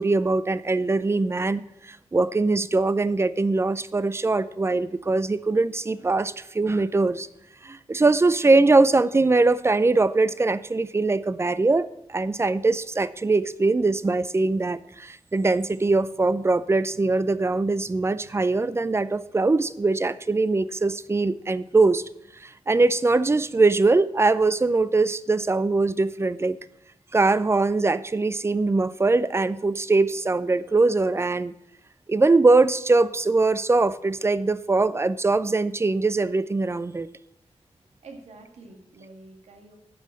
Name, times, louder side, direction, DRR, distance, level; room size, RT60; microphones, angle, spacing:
voice 1, 0.0-7.3 7.6-22.0 22.4-26.6 27.1-31.5 32.1-37.1, right 3 dB, 25° right, 16 dB, 0.5 m, -22 dB
voice 2, 38.0-39.8, right 3 dB, 85° right, 2 dB, 1.9 m, -46 dB
11.5 x 5.5 x 7.6 m, 0.80 s
wide cardioid pair, 100°, 11 cm